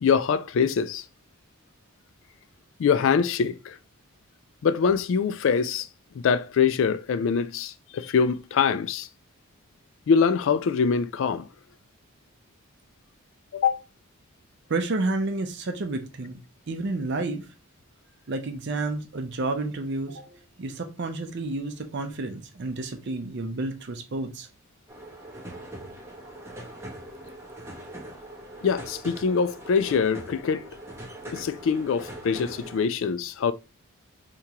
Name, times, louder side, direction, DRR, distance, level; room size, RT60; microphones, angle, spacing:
voice 1, 0.0-1.0 2.8-3.8 4.6-5.9 6.2-9.1 10.1-11.5 13.5-13.8 28.6-30.6 31.3-33.5, left 6 dB, 60° left, 0.3 m, -24 dB
voice 2, 14.7-16.4 16.7-17.4 18.3-24.5, right 2 dB, 50° right, 0.5 m, -30 dB
sound 1, 24.9-32.8, right 1 dB, 10° right, 0.7 m, -42 dB
3.6 x 2.9 x 2.8 m
head